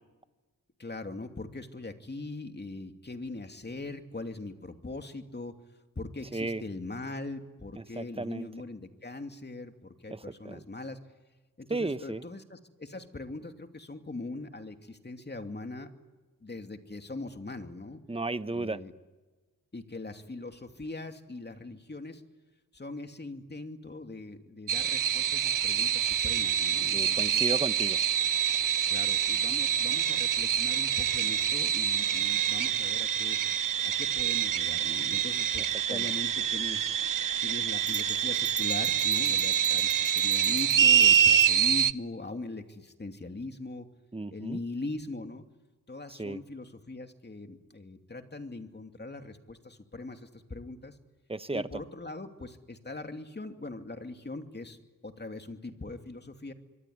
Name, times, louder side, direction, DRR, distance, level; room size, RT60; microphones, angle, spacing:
voice 1, 0.8-5.5 6.0-11.0 11.6-15.9 16.4-18.0 18.5-18.9 19.7-22.2 22.7-27.4 28.9-33.4 34.0-36.9 37.4-43.9 44.3-45.4 45.9-51.0 51.5-54.8 55.0-56.5, left 2 dB, 30° left, 6 dB, 2.7 m, -41 dB
voice 2, 6.3-6.6 7.8-8.5 10.1-10.6 11.7-12.3 18.1-18.8 26.0-26.3 26.9-28.0 35.6-35.7 35.9-36.1 44.1-44.6 46.1-46.4 51.3-51.8, right 2 dB, 15° right, 13 dB, 1.1 m, -34 dB
sound 1, 24.7-41.9, right 9 dB, 70° right, 0.8 m, -26 dB
sound 2, 37.9-41.6, right 3 dB, 15° left, 2.1 m, -39 dB
26.5 x 23.0 x 9.5 m, 1.2 s
cardioid pair, 65°, 34 cm